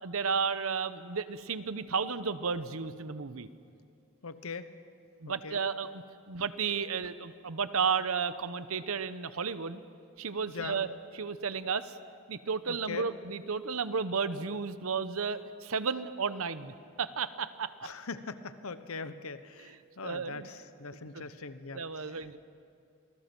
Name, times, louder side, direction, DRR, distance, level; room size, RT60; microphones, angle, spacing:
voice 1, 0.0-3.5 5.2-9.8 10.2-10.9 11.1-12.0 12.3-17.9 20.0-20.5 21.1-21.2 21.7-22.4, right 5 dB, 80° right, 13 dB, 0.9 m, -33 dB
voice 2, 4.2-4.7 5.3-5.6 10.5-10.8 12.7-13.1 17.8-22.3, left 4 dB, 80° left, 12 dB, 1.0 m, -41 dB
27.0 x 20.5 x 6.1 m, 2.5 s
head